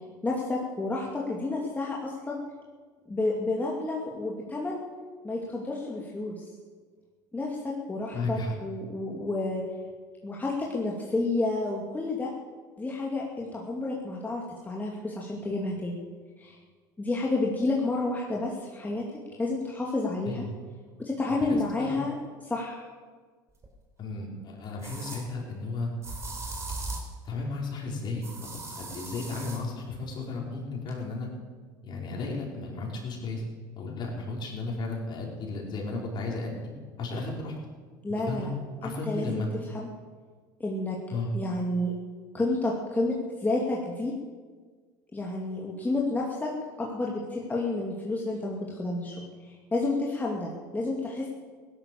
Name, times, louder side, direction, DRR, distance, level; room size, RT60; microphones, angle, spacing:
voice 1, 0.2-2.4 3.1-4.8 5.2-6.4 7.3-9.6 10.2-12.3 12.8-16.0 16.4-16.6 17.0-19.1 19.4-20.4 21.0-22.1 22.4-22.9 38.0-38.5 38.8-39.4 39.7-39.9 40.6-41.0 41.3-41.9 42.3-44.1 45.1-46.5 46.8-49.2 49.4-51.3, left 2 dB, 15° left, -3 dB, 2.5 m, -30 dB
voice 2, 8.1-8.5 20.2-20.5 21.3-22.0 24.0-25.9 27.2-31.3 31.8-33.4 33.8-36.6 37.0-37.5 38.3-38.5 38.8-39.5 41.1-41.3, left 3 dB, 45° left, -1 dB, 5.0 m, -34 dB
sound 1, 23.6-23.7 24.8-25.2 26.0-27.1 28.2-29.6, right 3 dB, 25° right, 3.9 m, -38 dB
16.0 x 11.5 x 7.2 m, 1.5 s
hypercardioid pair, 85°, 10 cm